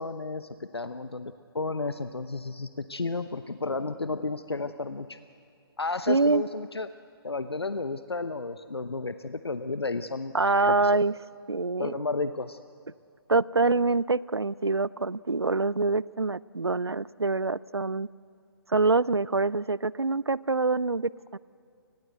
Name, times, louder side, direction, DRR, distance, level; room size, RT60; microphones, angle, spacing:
voice 1, 0.0-5.2 5.8-6.9 7.2-10.3 10.7-10.9 11.8-12.6, left 3 dB, 75° left, 11 dB, 0.9 m, -32 dB
voice 2, 6.1-6.4 10.3-11.1 11.5-12.0 13.3-18.1 18.7-21.4, right 3 dB, 80° right, 22 dB, 0.6 m, -25 dB
29.0 x 20.0 x 7.9 m, 2.4 s
figure-of-eight pair, 135°, 13 cm